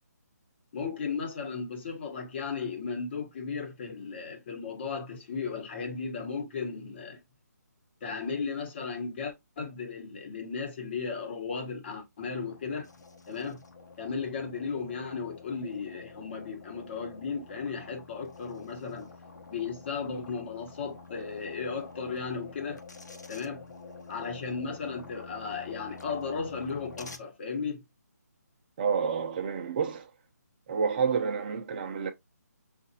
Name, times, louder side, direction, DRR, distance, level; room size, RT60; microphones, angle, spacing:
voice 1, 0.7-7.2 8.0-12.9 13.3-13.6 14.0-19.1 19.5-22.8 23.3-23.6 24.1-27.8, left 5 dB, 40° left, 1.2 m, -35 dB
sound 1, 12.2-27.2, left 3 dB, 85° left, 0.9 m, -48 dB
voice 2, 28.8-30.1 30.7-32.1, right 6 dB, 30° right, 0.7 m, -29 dB
6.3 x 2.6 x 2.8 m
hypercardioid pair, 155°, 9 cm